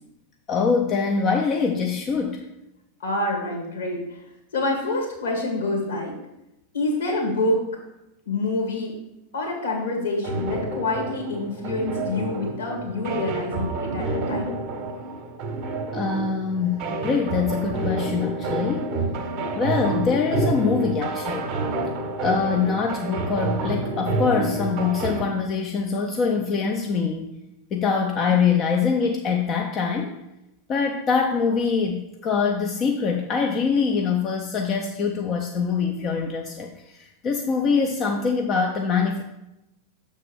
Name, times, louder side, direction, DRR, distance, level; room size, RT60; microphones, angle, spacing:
voice 1, 0.5-2.4 15.9-18.9 19.5-21.5 22.2-27.3 27.7-30.1 30.7-39.2, left 5 dB, 30° left, 3 dB, 0.6 m, -24 dB
voice 2, 3.0-4.2 4.5-6.1 6.7-7.6 8.3-8.9 9.3-14.5, left 2 dB, 65° left, 0 dB, 1.9 m, -27 dB
sound 1, 10.2-25.2, right 2 dB, 35° right, 0.9 m, -28 dB
6.8 x 3.6 x 6.0 m, 0.90 s
figure-of-eight pair, 90°, 0 cm